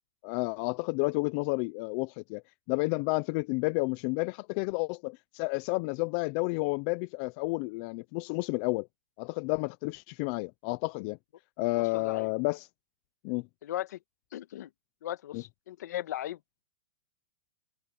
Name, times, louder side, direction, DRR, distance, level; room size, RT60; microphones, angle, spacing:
voice 1, 0.2-2.4 2.7-8.9 9.2-11.2 11.6-12.7 13.2-13.5 15.3-15.4, left 26 dB, 40° left, 0.7 m, -31 dB
voice 2, 11.8-12.3 13.6-14.0 14.3-14.7 15.0-16.4, left 13 dB, 65° left, 1.6 m, -37 dB
open air
hypercardioid pair, 145°, 10 cm